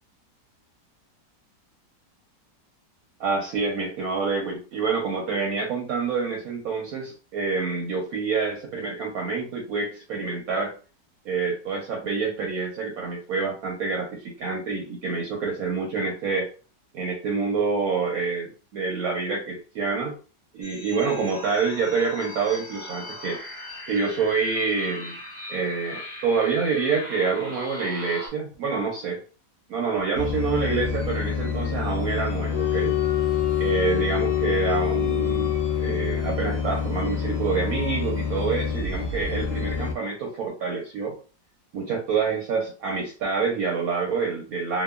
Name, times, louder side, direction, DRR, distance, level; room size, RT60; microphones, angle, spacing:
voice 1, 3.2-10.7 11.2-16.5 16.9-20.1 20.5-23.4 23.9-25.1 25.5-29.2 29.7-33.0 33.6-41.2 41.7-44.8, right 4 dB, 70° right, 0 dB, 1.0 m, -27 dB
sound 1, 20.6-28.3, left 1 dB, 20° left, 1.4 m, -39 dB
sound 2, 30.1-39.9, left 5 dB, 65° left, 0.6 m, -28 dB
sound 3, 32.5-36.4, left 22 dB, 85° left, 1.2 m, -26 dB
2.9 x 2.3 x 2.3 m, 0.36 s
omnidirectional pair, 1.9 m